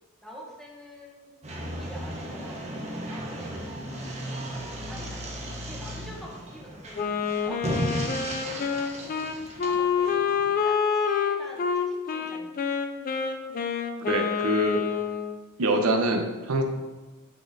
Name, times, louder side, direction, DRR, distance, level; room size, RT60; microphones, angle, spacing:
voice 1, 0.2-1.3 1.6-5.3 5.6-9.2 9.6-12.7, equal, ahead, -2 dB, 0.9 m, -46 dB
sound 1, 1.4-10.6, right 1 dB, 30° right, 0.9 m, -35 dB
Wind instrument woodwind instrument, 6.9-15.4, left 6 dB, 40° left, 0.4 m, -27 dB
voice 2, 14.1-14.8 15.6-16.6, right 1 dB, 70° right, 4 dB, 0.6 m, -24 dB
9.2 x 4.0 x 2.6 m, 1.2 s
head